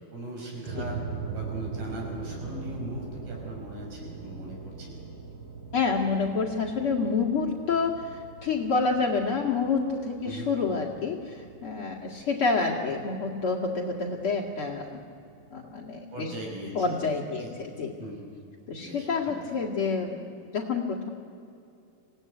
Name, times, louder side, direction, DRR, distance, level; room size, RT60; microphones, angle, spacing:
voice 1, 0.1-5.0 10.2-10.5 16.1-17.0 17.3-17.7 18.0-18.3 18.8-19.4, right 1 dB, 70° right, -1 dB, 7.8 m, -39 dB
sound 1, 0.6-15.8, right 5 dB, 40° right, 5.6 m, -42 dB
voice 2, 5.7-11.4 11.6-15.0 15.5-16.3 16.7-17.9 18.7-20.3 20.5-21.1, left 4 dB, 45° left, -3 dB, 2.5 m, -28 dB
26.5 x 17.5 x 9.4 m, 2.6 s
omnidirectional pair, 4.2 m